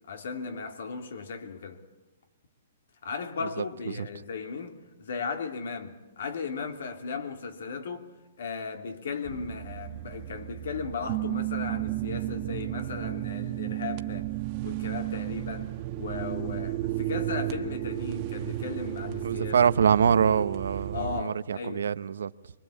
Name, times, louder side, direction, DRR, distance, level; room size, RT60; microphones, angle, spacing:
voice 1, 0.1-1.8 3.0-8.1 8.4-20.0 20.9-21.9, left 5 dB, 75° left, 2.8 m, -36 dB
sound 1, 9.2-21.2, right 15 dB, 35° right, 1.2 m, -33 dB
voice 2, 19.2-22.3, right 7 dB, 85° right, 0.9 m, -24 dB
24.5 x 23.5 x 8.5 m
hypercardioid pair, 155°, 0 cm